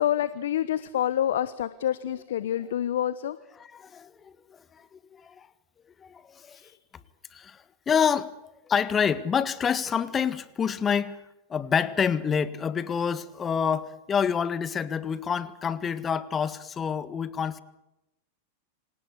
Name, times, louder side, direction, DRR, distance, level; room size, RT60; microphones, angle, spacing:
voice 1, 0.0-3.4 6.6-6.7, left 11 dB, 75° left, 16 dB, 1.2 m, -27 dB
voice 2, 3.6-4.3 4.7-4.9 5.1-5.5 6.0-6.6 7.3-8.3 8.7-11.2 11.5-17.6, left 7 dB, 25° left, 15 dB, 1.7 m, -27 dB
27.0 x 18.5 x 8.3 m, 0.90 s
hypercardioid pair, 105°, 0 cm